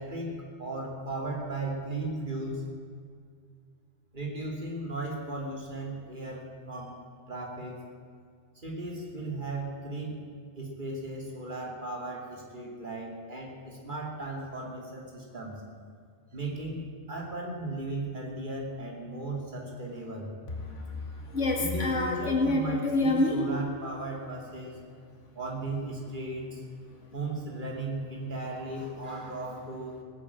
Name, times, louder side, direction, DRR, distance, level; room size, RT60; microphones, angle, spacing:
voice 1, 0.0-2.7 4.1-7.0 7.3-7.8 8.5-10.3 10.5-15.6 16.3-20.3 21.6-24.7 25.3-26.6 27.1-30.0, right 2 dB, 40° right, -1 dB, 2.9 m, -36 dB
voice 2, 20.6-23.5 27.0-27.1, left 2 dB, 75° left, 1 dB, 2.3 m, -27 dB
18.0 x 8.5 x 8.8 m, 2.1 s
omnidirectional pair, 1.3 m